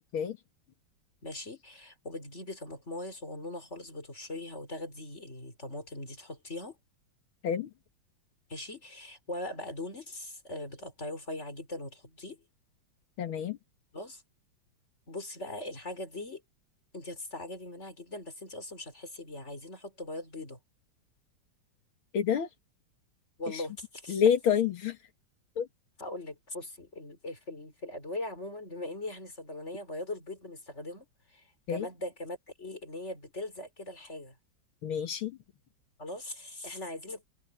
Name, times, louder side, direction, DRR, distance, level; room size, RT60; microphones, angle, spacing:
voice 1, 1.2-6.8 8.5-12.4 13.9-14.2 15.1-16.4 16.9-20.6 23.4-24.2 26.0-34.3 36.0-37.3, left 2 dB, 30° left, 5.6 m, -40 dB
voice 2, 13.2-13.6 22.1-22.5 23.5-23.6 24.1-25.0 25.6-25.7 31.7-31.9 34.8-35.4, left 8 dB, 85° left, 2.5 m, -28 dB
omnidirectional pair, 2.2 m